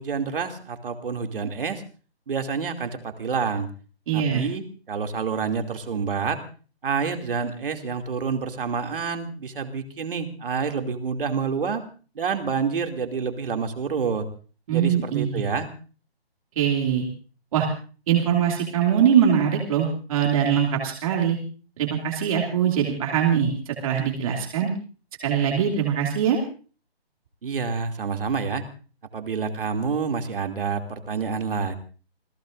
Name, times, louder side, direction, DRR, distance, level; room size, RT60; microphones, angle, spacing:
voice 1, 0.0-1.8 2.3-3.7 4.1-6.4 6.8-11.8 12.1-14.2 14.7-15.7 27.4-28.6 29.1-31.7, right 5 dB, 60° right, 5 dB, 2.7 m, -28 dB
voice 2, 4.1-4.4 14.7-15.4 16.6-17.1 17.5-17.7 18.1-21.4 21.8-24.7 25.2-26.4, right 8 dB, 35° right, 0 dB, 2.7 m, -22 dB
28.5 x 17.0 x 2.6 m, 0.38 s
hypercardioid pair, 160°, 32 cm